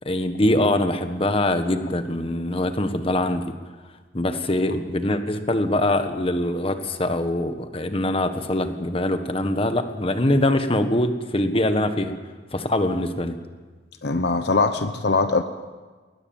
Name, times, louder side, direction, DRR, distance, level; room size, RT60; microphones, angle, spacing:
voice 1, 0.0-3.5 4.1-12.1 12.5-13.3, left 1 dB, 30° left, 8 dB, 1.4 m, -23 dB
voice 2, 14.0-15.4, left 3 dB, 65° left, 9 dB, 0.9 m, -21 dB
21.5 x 19.5 x 7.2 m, 1.4 s
head